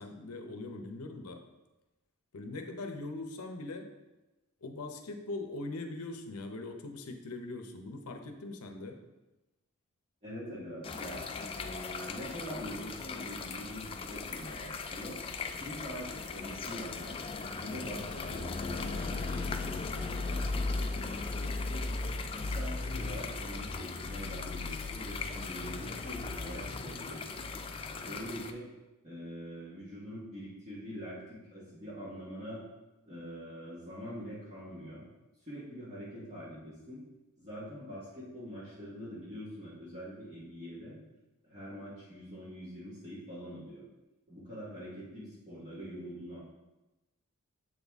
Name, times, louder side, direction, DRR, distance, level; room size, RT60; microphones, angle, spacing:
voice 1, 0.0-1.4 2.3-3.9 4.6-9.0, left 2 dB, 85° left, 5 dB, 0.7 m, -41 dB
voice 2, 10.2-15.2 15.5-17.1 17.6-21.8 22.3-27.2 27.9-28.7 29.0-32.6 33.0-35.0 35.4-37.0 37.4-41.0 41.4-43.8 44.3-46.4, equal, 30° right, -10 dB, 1.5 m, -44 dB
sound 1, 10.8-28.5, left 3 dB, 25° left, 0.3 m, -37 dB
7.6 x 4.0 x 3.5 m, 1.1 s
head